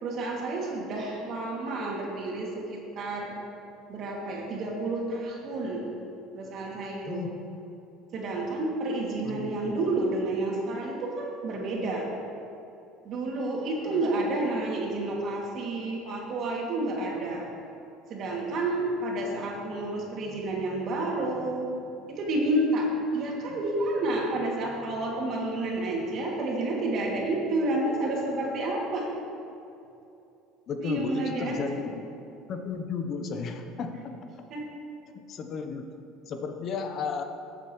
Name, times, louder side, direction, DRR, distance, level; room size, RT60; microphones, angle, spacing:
voice 1, 0.0-3.4 3.9-5.8 6.3-7.2 8.1-12.1 13.0-17.5 18.1-21.7 22.1-29.1 30.8-31.6 34.5-34.6, right 2 dB, 55° right, -2 dB, 2.4 m, -30 dB
voice 2, 9.2-9.8 23.5-23.6 30.7-32.1 32.5-34.0 35.3-35.9 36.3-37.2, left 5 dB, 50° left, 6 dB, 0.9 m, -34 dB
15.0 x 7.8 x 3.1 m, 2.7 s
supercardioid pair, 95°, 0 cm